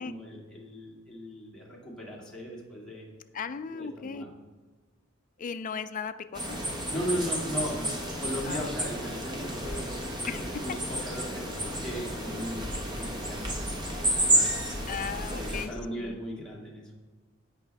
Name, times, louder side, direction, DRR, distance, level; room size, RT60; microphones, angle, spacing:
voice 1, 0.0-3.0 3.7-4.3 6.9-12.7 12.9-13.5 13.9-14.6 15.1-16.9, equal, 5° left, -5 dB, 2.2 m, -37 dB
voice 2, 3.3-4.3 5.4-6.6 8.5-8.7 10.2-10.8 14.9-16.2, left 6 dB, 40° left, 12 dB, 0.4 m, -37 dB
sound 1, 6.3-15.7, right 1 dB, 20° right, 1.3 m, -31 dB
15.5 x 5.6 x 3.4 m, 1.3 s
head